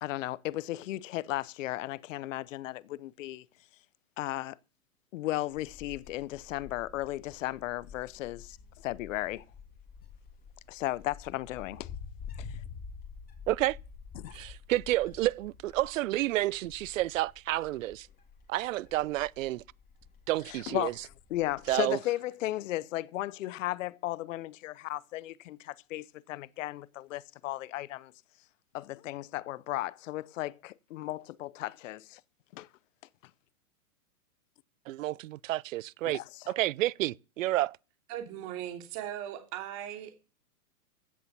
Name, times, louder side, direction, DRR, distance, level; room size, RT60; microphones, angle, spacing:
voice 1, 0.0-3.4 4.2-4.6 5.1-9.4 10.7-11.9 12.4-12.6 14.1-14.4 20.5-21.0 21.3-28.1 28.7-32.2 32.5-32.7 36.0-36.5, left 16 dB, 60° left, 0.8 m, -35 dB
Wind, 5.5-21.8, left 6 dB, 20° left, 3.3 m, -49 dB
voice 2, 13.5-13.8 14.3-18.1 18.5-19.6 20.3-20.9 21.7-22.0 34.9-36.2 36.5-37.8, right 16 dB, 60° right, 0.6 m, -30 dB
voice 3, 38.1-40.1, right 11 dB, 40° right, 2.8 m, -38 dB
16.0 x 6.8 x 7.2 m
hypercardioid pair, 130°, 43 cm